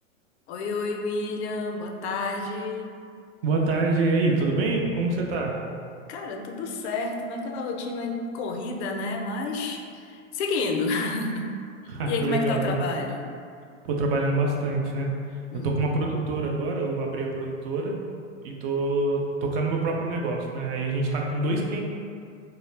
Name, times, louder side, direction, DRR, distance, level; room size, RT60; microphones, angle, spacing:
voice 1, 0.5-3.0 6.1-11.5 12.0-13.2 15.5-15.9, left 3 dB, 55° left, 2 dB, 0.4 m, -30 dB
voice 2, 3.4-5.6 11.9-12.8 13.8-15.1 15.6-18.0 18.4-21.9, right 2 dB, 45° right, 0 dB, 0.5 m, -26 dB
2.3 x 2.0 x 3.1 m, 2.3 s
hypercardioid pair, 110°, 40 cm